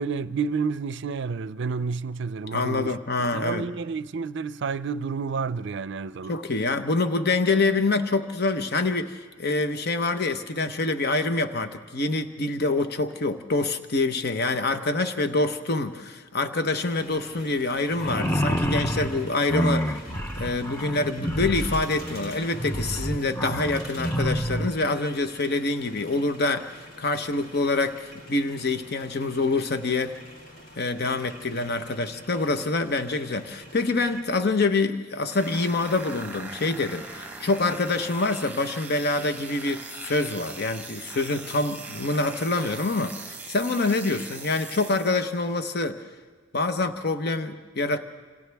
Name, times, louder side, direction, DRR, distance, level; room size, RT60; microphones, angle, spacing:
voice 1, 0.0-2.9 3.3-6.3, right 5 dB, 65° right, 0.5 m, -30 dB
voice 2, 2.5-3.7 6.3-20.1 20.4-30.2 30.8-46.0 46.5-48.0, left 3 dB, 55° left, 1.0 m, -26 dB
sound 1, 16.7-34.2, equal, 75° left, 4.2 m, -46 dB
sound 2, 17.9-24.8, equal, 10° left, 0.8 m, -28 dB
sound 3, 35.3-45.4, right 3 dB, 10° right, 1.2 m, -40 dB
27.5 x 27.0 x 3.5 m
head